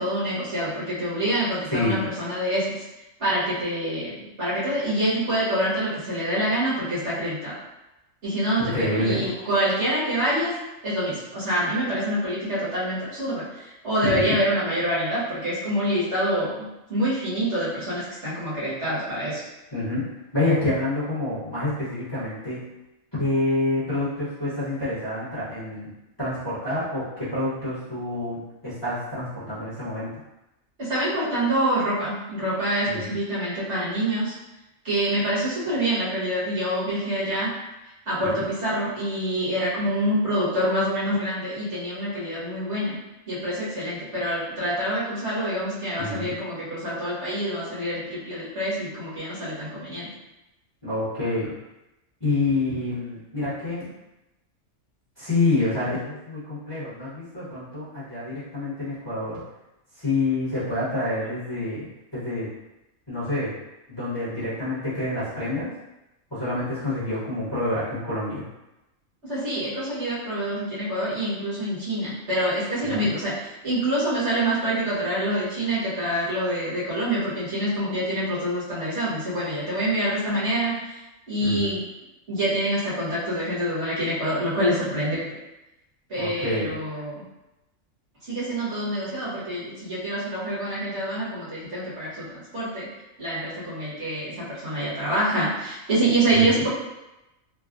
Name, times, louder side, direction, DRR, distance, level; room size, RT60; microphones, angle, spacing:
voice 1, 0.0-2.8 3.2-7.6 8.2-10.5 10.8-19.4 30.8-34.3 34.8-37.5 38.1-43.0 43.3-50.1 69.3-81.0 81.3-81.8 82.3-85.3 86.1-87.2 88.2-92.9 93.2-96.7, right 1 dB, 60° right, -10 dB, 1.4 m, -26 dB
voice 2, 8.6-9.3 14.1-14.4 19.7-20.1 20.3-22.6 23.2-25.9 26.2-30.1 32.9-33.1 38.3-38.5 46.0-46.4 50.8-51.5 52.2-53.9 55.2-59.4 60.0-61.9 62.1-62.5 63.1-63.5 63.9-65.7 66.3-68.4 72.8-73.1 81.4-81.7 86.2-86.7 96.3-96.6, left 2 dB, 20° left, -13 dB, 1.0 m, -27 dB
3.3 x 2.2 x 2.4 m, 0.96 s
omnidirectional pair, 1.4 m